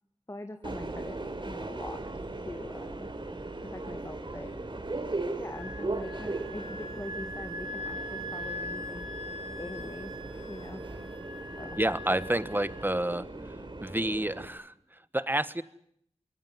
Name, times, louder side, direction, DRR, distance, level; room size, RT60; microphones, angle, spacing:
voice 1, 0.3-1.2 1.5-2.0 2.5-3.1 3.6-4.5 5.4-9.1 9.6-10.1 10.5-10.8 11.6-11.8, left 1 dB, 25° left, 7 dB, 1.8 m, -42 dB
Subway metro underground, 0.6-14.5, right 2 dB, 45° right, 3.7 m, -38 dB
Wind instrument woodwind instrument, 5.5-12.9, left 1 dB, 80° left, 3.3 m, -42 dB
voice 2, 11.8-15.6, right 1 dB, 15° right, 15 dB, 1.3 m, -30 dB
25.0 x 22.5 x 9.5 m, 0.70 s
wide cardioid pair, 80°, 12 cm